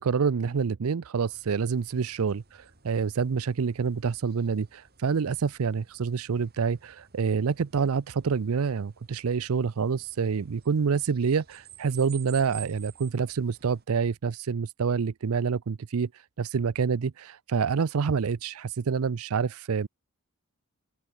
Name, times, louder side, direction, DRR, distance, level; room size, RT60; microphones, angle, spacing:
voice 1, 0.0-16.1 16.4-19.9, right 5 dB, 75° right, 0.5 m, -27 dB
sound 1, 1.3-13.9, right 10 dB, 45° right, 2.8 m, -52 dB
open air
head